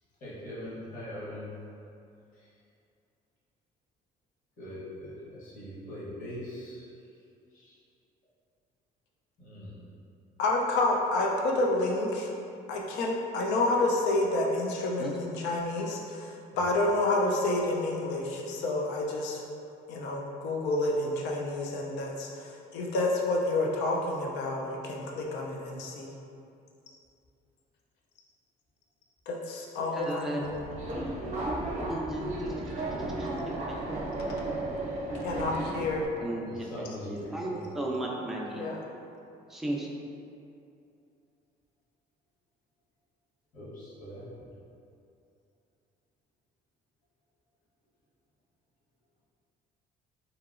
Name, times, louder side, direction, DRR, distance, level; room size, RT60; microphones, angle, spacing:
voice 1, 0.2-1.5 4.6-6.8 7.5-7.8 9.4-9.7 16.5-16.7 36.5-37.6 43.5-44.5, left 1 dB, 50° left, -9 dB, 1.0 m, -42 dB
voice 2, 10.4-12.3 12.7-19.4 19.9-26.1 29.3-30.6 35.2-36.1 38.5-38.8, left 2 dB, 85° left, -1 dB, 0.5 m, -29 dB
voice 3, 29.9-30.4 31.9-32.2 33.2-33.3 33.7-33.8 36.2-36.7 37.0-38.6 39.5-39.9, right 1 dB, ahead, -3 dB, 0.4 m, -34 dB
Subway metro underground, 30.4-36.1, right 1 dB, 40° right, 0.6 m, -34 dB
2.8 x 2.8 x 2.4 m, 2.6 s
cardioid pair, 110°, 17 cm